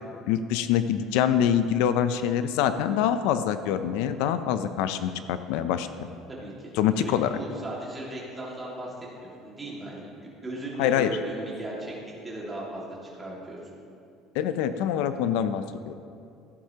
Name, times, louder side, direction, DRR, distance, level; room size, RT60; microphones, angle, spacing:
voice 1, 0.3-5.9 6.8-7.4 10.8-11.2 14.3-15.9, left 9 dB, 80° left, 11 dB, 0.4 m, -25 dB
voice 2, 6.3-11.9 12.2-13.6, right 1 dB, 10° right, -5 dB, 1.9 m, -37 dB
15.0 x 8.5 x 2.9 m, 2.6 s
cardioid pair, 175°, 0 cm